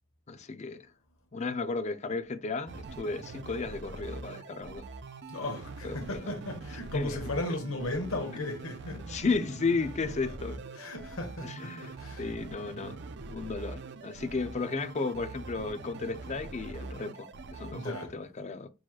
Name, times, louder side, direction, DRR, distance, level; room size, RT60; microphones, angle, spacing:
voice 1, 0.3-0.8 1.3-4.9 5.8-6.3 6.9-7.3 8.9-10.6 11.4-13.0 13.3-18.7, left 4 dB, 35° left, 0.4 m, -34 dB
sound 1, 2.7-18.1, right 3 dB, 55° right, 0.4 m, -43 dB
voice 2, 5.3-9.0 10.3-10.4 10.8-12.3 17.7-18.1, left 2 dB, 75° left, 1.2 m, -36 dB
6.2 x 3.0 x 2.3 m
head